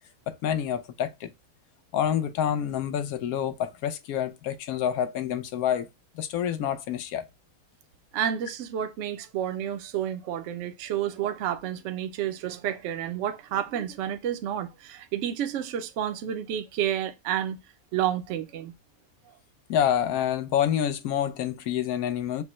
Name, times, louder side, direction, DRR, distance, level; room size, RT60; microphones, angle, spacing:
voice 1, 0.3-1.3 1.9-5.9 6.1-7.2 19.7-22.4, left 9 dB, 80° left, 1.1 m, -27 dB
voice 2, 8.1-17.6 17.9-18.7, right 10 dB, 65° right, 0.8 m, -30 dB
5.1 x 2.1 x 3.0 m
omnidirectional pair, 1.5 m